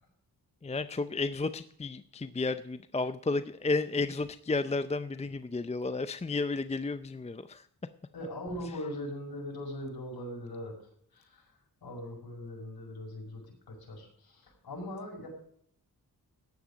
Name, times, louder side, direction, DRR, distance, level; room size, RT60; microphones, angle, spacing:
voice 1, 0.6-7.6, left 3 dB, 15° left, 12 dB, 0.5 m, -32 dB
voice 2, 8.1-10.7 11.1-15.3, left 1 dB, 75° left, -1 dB, 6.0 m, -41 dB
14.0 x 10.5 x 5.1 m, 0.66 s
wide cardioid pair, 95°, 38 cm